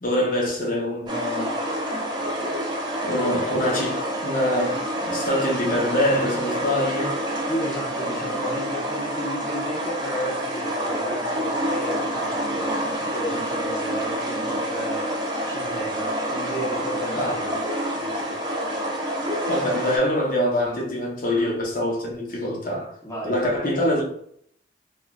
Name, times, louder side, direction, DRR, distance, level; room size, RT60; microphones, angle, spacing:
voice 1, 0.0-1.5 3.1-7.1 17.1-17.5 19.5-22.9 23.2-24.2, left 1 dB, 50° left, 0.8 m, -24 dB
sound 1, 1.1-20.0, right 1 dB, 25° right, 0.6 m, -28 dB
voice 2, 7.5-15.1 15.5-17.6 17.9-18.4 23.0-23.4, equal, 20° left, 0.8 m, -33 dB
2.9 x 2.3 x 2.3 m
head